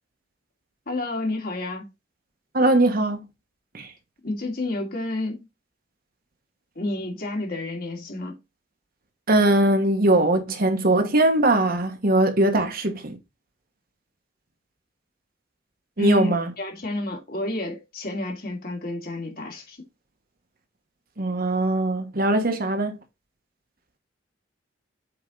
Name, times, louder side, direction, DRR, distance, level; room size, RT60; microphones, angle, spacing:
voice 1, 0.9-1.9 4.2-5.4 6.8-8.4 16.0-19.8, left 2 dB, 50° left, 2.6 m, -30 dB
voice 2, 2.5-3.2 3.7-3.9 9.3-13.2 16.0-16.5 21.2-23.0, right 2 dB, 50° right, 1.3 m, -21 dB
7.9 x 4.6 x 3.9 m
head